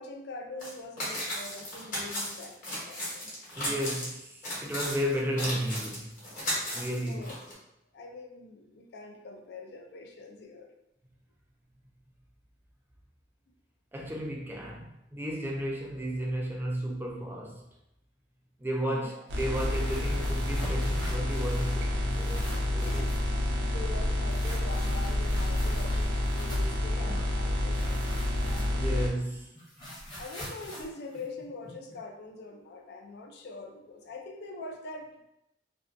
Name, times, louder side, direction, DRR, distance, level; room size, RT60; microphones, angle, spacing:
voice 1, 0.0-3.3 7.1-7.4 7.9-10.7 18.8-19.1 22.5-23.1 23.7-29.1 30.2-35.2, left 3 dB, 65° left, 3 dB, 0.4 m, -44 dB
sound 1, 0.6-0.7 1.0-4.1 4.4-7.5, equal, 50° left, 1.0 m, -35 dB
voice 2, 3.5-6.2 6.7-7.2 13.9-17.6 18.6-23.0 27.0-27.3 28.8-29.4, equal, 10° right, -2 dB, 0.4 m, -33 dB
sound 2, 19.3-29.1, left 1 dB, 70° right, 0.5 m, -29 dB
sound 3, 19.4-21.8 22.1-23.3 24.3-26.8 27.7-29.0 29.3-32.0, equal, 25° left, 0.8 m, -45 dB
2.6 x 2.1 x 2.5 m, 0.85 s
head